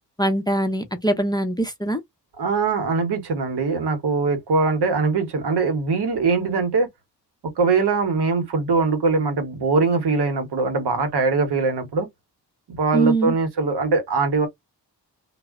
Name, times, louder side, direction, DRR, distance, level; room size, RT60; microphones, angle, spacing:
voice 1, 0.2-2.0 12.9-13.4, right 2 dB, 10° left, 0.5 m, -22 dB
voice 2, 2.4-6.9 7.6-12.1 12.7-14.5, right 4 dB, 75° right, 0.9 m, -22 dB
2.0 x 2.0 x 3.4 m
cardioid pair, 75°, 40 cm